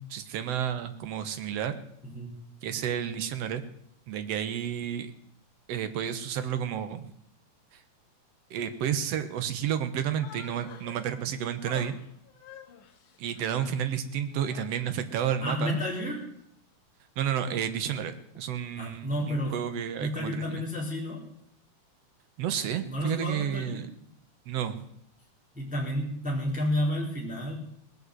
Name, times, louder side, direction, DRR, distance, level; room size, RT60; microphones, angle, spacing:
voice 1, 0.0-1.8 2.6-3.6 4.1-5.1 5.7-7.0 8.5-12.0 13.2-15.8 17.2-20.6 22.4-23.9 24.5-24.9, right 9 dB, 65° right, 9 dB, 1.9 m, -31 dB
voice 2, 2.0-2.3 15.4-16.2 18.8-19.6 20.0-21.3 22.6-23.8 25.5-27.6, left 1 dB, ahead, -4 dB, 3.6 m, -31 dB
Human voice, 10.1-11.2 11.6-14.0 14.3-14.9 15.5-16.3, left 7 dB, 80° left, 2.9 m, -49 dB
19.5 x 8.2 x 7.8 m, 0.71 s
omnidirectional pair, 3.7 m